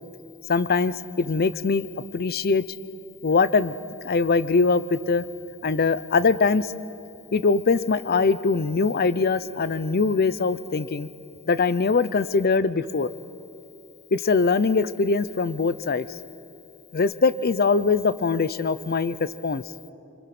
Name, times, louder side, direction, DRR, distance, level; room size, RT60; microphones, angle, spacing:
voice 1, 0.5-1.9 2.1-2.6 3.2-3.7 4.0-5.2 5.6-6.7 7.3-11.1 11.5-13.1 14.1-16.1 16.9-19.2 19.4-19.6, left 4 dB, 45° left, 16 dB, 0.6 m, -22 dB
26.0 x 25.5 x 6.0 m, 2.8 s
head